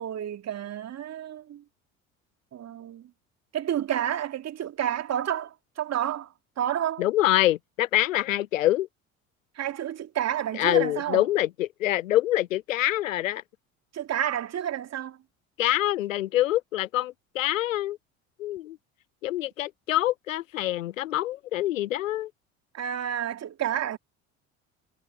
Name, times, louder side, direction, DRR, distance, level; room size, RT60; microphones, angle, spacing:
voice 1, 0.0-1.6 2.5-3.1 3.5-7.0 9.5-11.2 13.9-15.2 22.7-24.0, right 10 dB, 40° right, 2.8 m, -30 dB
voice 2, 7.0-8.9 10.6-13.4 15.6-18.0 18.4-18.8 19.2-22.3, left 14 dB, 80° left, 0.5 m, -25 dB
figure-of-eight pair, 60°, 39 cm